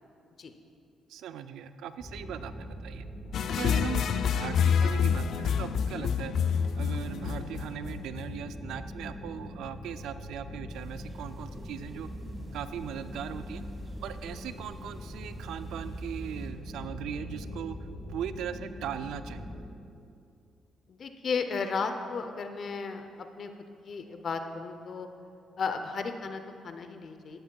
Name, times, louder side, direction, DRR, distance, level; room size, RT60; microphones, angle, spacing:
voice 1, 1.1-3.1 3.6-6.3 6.8-12.1 12.5-13.6 14.0-19.4, right 9 dB, 80° right, 11 dB, 0.4 m, -39 dB
sound 1, 2.0-19.7, equal, 20° left, 1.2 m, -42 dB
sound 2, 3.3-8.3, left 7 dB, 65° left, 0.3 m, -27 dB
sound 3, 10.7-16.5, right 1 dB, 25° right, 2.2 m, -53 dB
voice 2, 20.9-23.5 23.8-25.1 25.6-27.4, left 5 dB, 50° left, 7 dB, 0.7 m, -34 dB
14.0 x 9.9 x 2.3 m, 2.5 s
cardioid pair, 90°, 0 cm